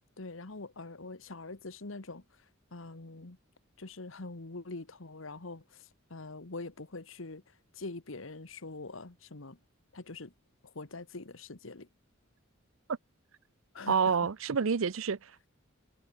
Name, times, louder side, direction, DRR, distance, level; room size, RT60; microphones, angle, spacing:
voice 1, 0.2-2.2 2.7-3.4 3.8-9.6 9.9-10.3 10.6-11.9 13.7-14.2, left 3 dB, 70° left, 1.5 m, -44 dB
voice 2, 13.9-15.5, right 6 dB, 80° right, 0.6 m, -28 dB
head